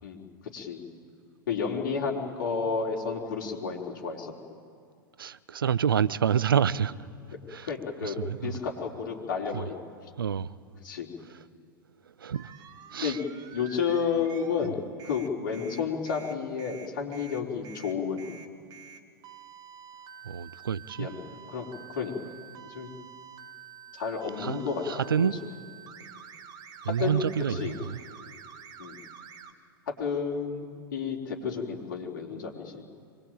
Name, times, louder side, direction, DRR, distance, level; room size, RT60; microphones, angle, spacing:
voice 1, 0.5-0.8 1.5-4.3 7.6-8.2 8.4-9.8 10.8-11.1 13.0-13.2 13.5-14.7 15.0-18.3 21.0-21.2 21.5-22.1 22.7-22.9 23.9-25.3 27.0-27.2 27.5-27.8 28.8-29.0 29.9-30.7 30.9-32.8, left 6 dB, 60° left, 4.0 m, -31 dB
voice 2, 5.2-6.9 7.5-7.7 8.0-8.6 9.5-9.7 10.2-10.5 12.2-12.5 12.9-13.2 20.2-21.1 24.4-25.4 26.8-28.0, right 8 dB, 75° right, 0.7 m, -28 dB
sound 1, 12.3-14.7 15.0-29.5, right 7 dB, 35° right, 2.0 m, -48 dB
25.0 x 20.5 x 9.1 m
figure-of-eight pair, 90°, 12 cm